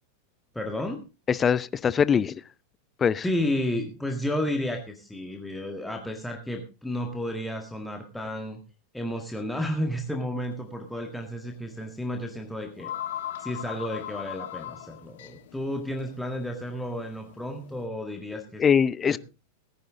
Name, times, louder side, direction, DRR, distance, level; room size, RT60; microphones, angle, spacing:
voice 1, 0.5-1.0 3.2-8.6 8.9-12.9 13.4-18.6 19.1-19.2, left 1 dB, 5° left, 1.7 m, -32 dB
voice 2, 1.3-2.4 3.0-3.2 18.6-19.2, left 7 dB, 20° left, 0.6 m, -22 dB
sound 1, 10.4-10.7 11.0-11.1 12.2-12.3 12.6-17.9, left 11 dB, 55° left, 1.0 m, -39 dB
18.0 x 10.5 x 3.8 m
figure-of-eight pair, 90°, 0 cm